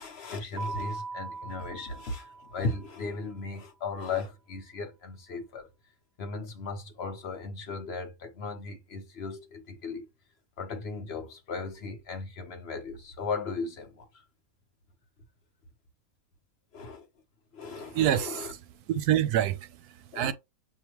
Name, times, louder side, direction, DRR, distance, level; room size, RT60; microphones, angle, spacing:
voice 1, 0.0-5.7 6.2-10.0 10.6-14.2 16.7-17.1 17.5-18.5 20.1-20.3, left 4 dB, 50° left, 1.0 m, -37 dB
Keyboard (musical), 0.6-3.1, right 4 dB, 65° right, 0.7 m, -40 dB
voice 2, 17.6-20.3, right 11 dB, 85° right, 1.1 m, -28 dB
6.4 x 2.7 x 3.0 m
omnidirectional pair, 1.6 m